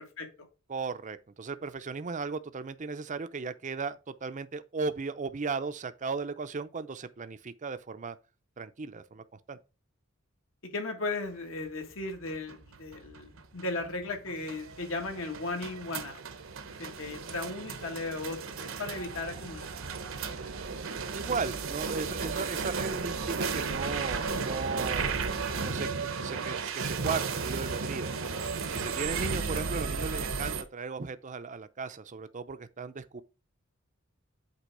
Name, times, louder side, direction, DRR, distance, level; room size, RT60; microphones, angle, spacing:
voice 1, 0.7-8.2 8.6-9.6 21.1-25.3 25.6-28.1 28.7-33.2, right 4 dB, 35° right, 0.5 m, -36 dB
voice 2, 10.6-16.2 16.8-19.7, left 2 dB, 70° left, 1.7 m, -36 dB
sound 1, 12.0-30.6, right 5 dB, 70° right, 0.9 m, -34 dB
8.3 x 3.4 x 4.8 m
head